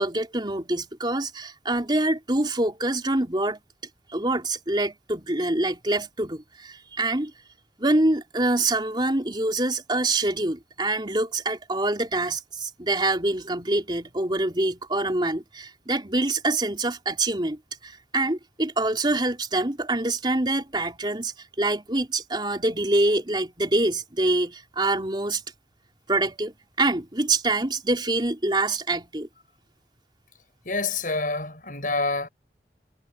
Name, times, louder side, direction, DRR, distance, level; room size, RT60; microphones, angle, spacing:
voice 1, 0.0-3.6 4.1-7.3 7.8-25.4 26.1-29.3, right 2 dB, 25° right, 3.7 m, -25 dB
voice 2, 30.6-32.3, left 3 dB, 50° left, 7.9 m, -27 dB
head